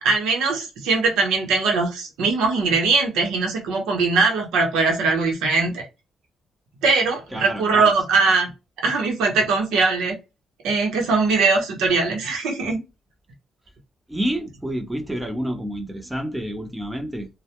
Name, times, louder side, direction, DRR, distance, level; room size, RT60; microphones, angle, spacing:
voice 1, 0.0-5.8 6.8-8.5 8.8-10.2 10.6-12.8, right 4 dB, 85° right, 0.8 m, -21 dB
voice 2, 7.3-8.0 14.1-17.3, equal, 10° right, 0.7 m, -29 dB
2.2 x 2.1 x 2.9 m
cardioid pair, 90°, 0 cm